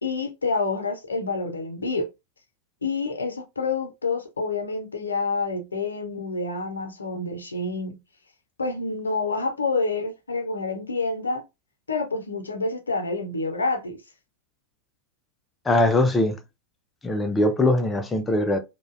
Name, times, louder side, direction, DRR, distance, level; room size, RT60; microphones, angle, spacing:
voice 1, 0.0-2.1 2.8-8.0 8.6-11.4 11.9-14.0, left 3 dB, 75° left, 0.6 m, -28 dB
voice 2, 15.7-16.4 17.0-18.6, left 2 dB, 15° left, 0.4 m, -21 dB
2.5 x 2.1 x 2.4 m
figure-of-eight pair, 90°, 0 cm